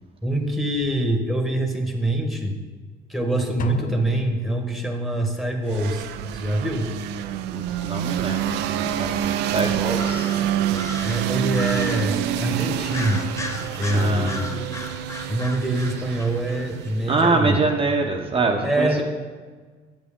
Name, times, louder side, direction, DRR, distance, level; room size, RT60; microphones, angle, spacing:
voice 1, 0.2-2.6 3.1-6.1 6.3-6.9 11.0-13.2 13.7-14.7 15.3-17.6 18.6-19.0, right 1 dB, ahead, 3 dB, 1.2 m, -24 dB
sound 1, 3.6-5.4, left 7 dB, 55° left, 0.6 m, -36 dB
sound 2, 5.7-17.4, right 10 dB, 85° right, 0.4 m, -27 dB
voice 2, 7.5-10.4 13.9-14.5 17.1-19.0, right 3 dB, 35° right, 0 dB, 0.8 m, -25 dB
sound 3, 9.9-12.2 12.9-16.9, left 2 dB, 15° left, 0.7 m, -36 dB
8.8 x 7.7 x 3.7 m, 1.4 s
cardioid pair, 110°, 17 cm